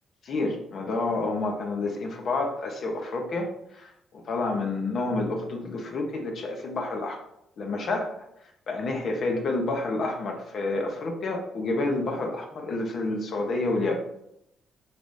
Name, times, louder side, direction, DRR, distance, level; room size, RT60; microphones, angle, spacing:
voice 1, 0.2-7.2 7.6-8.1 8.7-14.0, left 2 dB, 60° left, 2 dB, 0.9 m, -29 dB
5.7 x 3.4 x 2.7 m, 0.79 s
cardioid pair, 90°, 0 cm